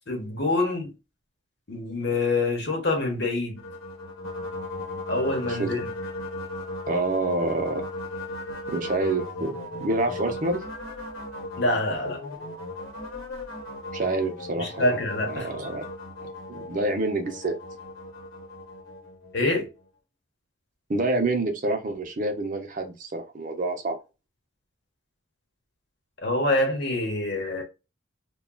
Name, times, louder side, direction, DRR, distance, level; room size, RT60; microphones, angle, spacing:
voice 1, 0.1-0.9 1.7-3.6 5.1-5.9 11.6-12.2 14.6-15.5 19.3-19.7 26.2-27.6, left 2 dB, 55° left, 1.1 m, -26 dB
sound 1, 3.6-19.8, left 2 dB, 85° left, 0.9 m, -37 dB
voice 2, 6.9-7.8 8.7-10.6 13.9-15.0 15.3-15.8 16.5-17.6 20.9-24.0, right 2 dB, 40° right, 0.6 m, -27 dB
3.6 x 2.3 x 2.2 m
head